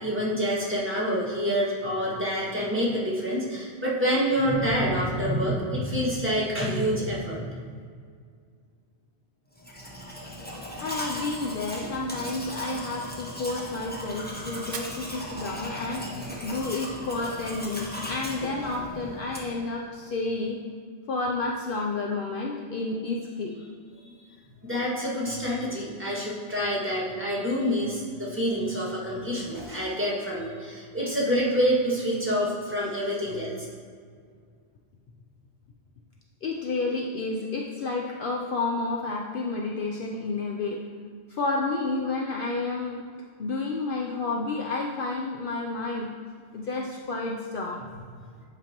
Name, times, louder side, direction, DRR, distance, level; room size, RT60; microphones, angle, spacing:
voice 1, 0.0-7.5 24.6-33.5, equal, 10° right, -8 dB, 1.8 m, -27 dB
Domestic sounds home sounds, 9.6-19.7, left 1 dB, 10° left, 0.8 m, -37 dB
voice 2, 10.8-20.6 21.1-23.5 25.0-25.1 36.4-40.8 41.3-43.0 43.4-46.1 46.5-47.8, left 3 dB, 60° left, -1 dB, 0.7 m, -30 dB
Fire, 14.6-16.6, right 5 dB, 60° right, 0.8 m, -44 dB
10.0 x 5.2 x 2.9 m, 2.1 s
omnidirectional pair, 1.1 m